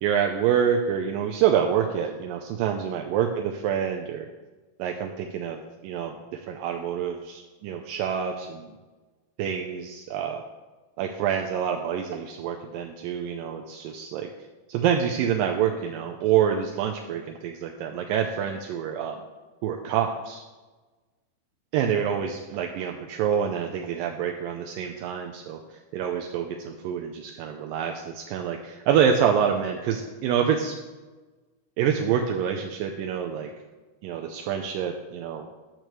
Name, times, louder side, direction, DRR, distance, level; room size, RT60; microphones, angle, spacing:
voice 1, 0.0-4.3 4.8-5.6 5.8-6.2 6.5-8.7 9.4-10.4 11.0-14.3 14.7-19.2 19.6-20.4 21.7-25.6 25.9-30.7 31.8-33.5 34.0-35.6, right 8 dB, 85° right, 3 dB, 2.0 m, -26 dB
10.5 x 7.9 x 3.0 m, 1.3 s
omnidirectional pair, 4.5 m